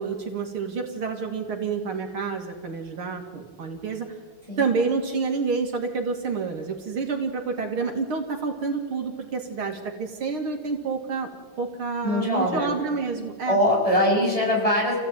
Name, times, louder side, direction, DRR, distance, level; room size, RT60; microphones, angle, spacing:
voice 1, 0.0-4.1 4.6-11.3 11.6-13.6, right 4 dB, 75° right, 3 dB, 3.2 m, -28 dB
voice 2, 12.0-12.7 13.5-15.0, left 1 dB, 15° left, -2 dB, 7.2 m, -22 dB
28.5 x 16.5 x 9.1 m, 1.5 s
omnidirectional pair, 2.3 m